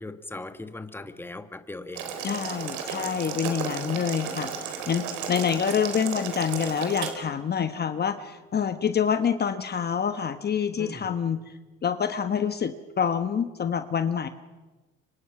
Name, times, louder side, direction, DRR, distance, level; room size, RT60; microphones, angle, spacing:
voice 1, 0.0-2.1 10.8-11.1, left 2 dB, 5° left, 9 dB, 1.7 m, -39 dB
Boiling, 1.9-7.1, right 7 dB, 80° right, 4.1 m, -34 dB
voice 2, 2.2-4.5 4.9-11.4 11.8-14.3, left 7 dB, 35° left, 9 dB, 1.3 m, -27 dB
26.5 x 24.5 x 6.1 m, 1.2 s
supercardioid pair, 95°, 30 cm